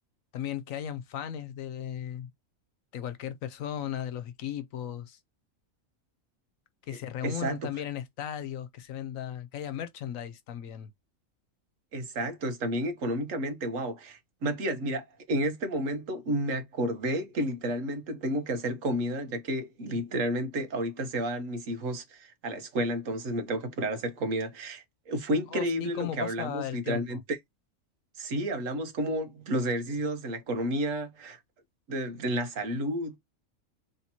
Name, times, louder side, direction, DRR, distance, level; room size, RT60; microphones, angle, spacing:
voice 1, 0.3-2.3 2.9-5.2 6.9-10.9 25.5-27.2, left 10 dB, 75° left, 1.0 m, -36 dB
voice 2, 6.9-7.6 11.9-27.4 28.2-31.4 31.9-33.2, right 1 dB, 70° right, 1.4 m, -31 dB
3.4 x 2.9 x 4.1 m
omnidirectional pair, 1.4 m